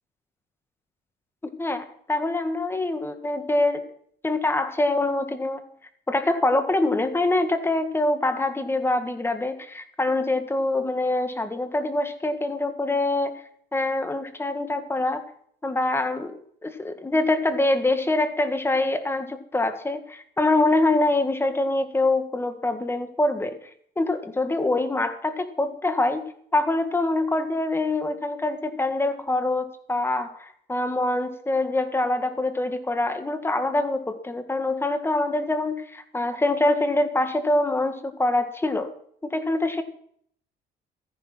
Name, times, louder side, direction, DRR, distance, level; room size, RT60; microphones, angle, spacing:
voice 1, 1.6-3.8 4.2-5.6 6.1-13.4 13.7-15.2 15.6-23.6 23.9-26.2 26.5-38.9 39.2-39.8, left 2 dB, 15° left, 9 dB, 1.8 m, -24 dB
14.0 x 10.5 x 6.0 m, 0.64 s
cardioid pair, 110°, 17 cm